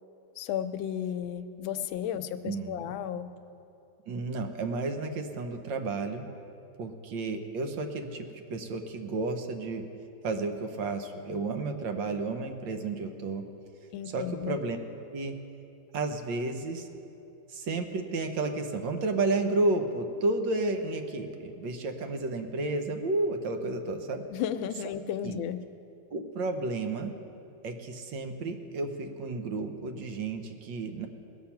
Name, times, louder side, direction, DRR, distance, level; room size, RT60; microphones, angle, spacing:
voice 1, 0.4-3.3 13.9-14.6 24.3-25.6, left 9 dB, 85° left, 10 dB, 1.4 m, -33 dB
voice 2, 2.4-2.9 4.1-6.2 6.8-9.8 10.2-13.4 14.1-14.8 15.1-15.4 15.9-16.9 17.5-24.2 25.2-25.4 26.1-27.1 27.6-31.1, right 3 dB, 75° right, 6 dB, 1.6 m, -32 dB
19.5 x 7.0 x 5.8 m, 2.8 s
omnidirectional pair, 2.1 m